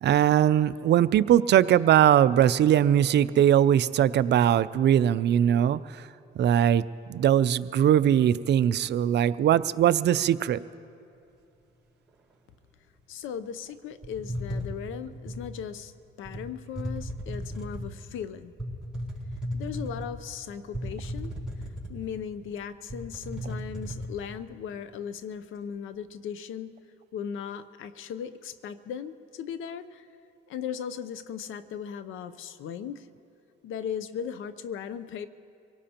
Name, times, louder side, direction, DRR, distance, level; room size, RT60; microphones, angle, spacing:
voice 1, 0.0-6.1 6.4-6.8 7.1-10.6, right 10 dB, 60° right, 15 dB, 0.4 m, -21 dB
voice 2, 13.1-15.9 16.2-18.5 19.5-21.3 21.9-26.7 27.1-30.1 30.5-33.1 33.6-35.3, left 8 dB, 80° left, 13 dB, 0.7 m, -37 dB
sound 1, 14.0-15.5 16.2-16.4 16.7-17.9 18.6-20.2 20.7-22.2 22.5-22.6 22.9-24.1, equal, 5° right, 4.4 m, -35 dB
25.0 x 18.0 x 2.9 m, 2.6 s
cardioid pair, 90°, 20 cm